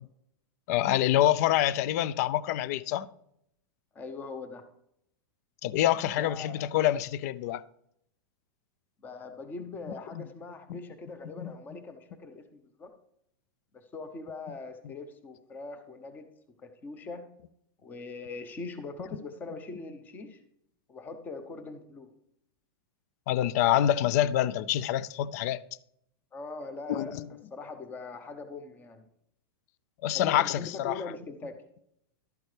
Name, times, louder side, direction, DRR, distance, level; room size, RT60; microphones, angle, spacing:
voice 1, 0.7-3.1 5.6-7.6 10.1-10.3 10.7-10.8 11.4-11.5 23.3-25.6 26.9-27.3 30.0-31.0, left 12 dB, 45° left, 0.4 m, -26 dB
voice 2, 3.9-4.6 6.2-6.7 9.0-12.9 13.7-16.2 16.6-17.2 17.8-20.4 20.9-22.1 26.3-27.2 27.5-29.1 30.1-31.5, left 3 dB, 15° left, 0.8 m, -41 dB
12.0 x 8.5 x 3.3 m
supercardioid pair, 160°, 12 cm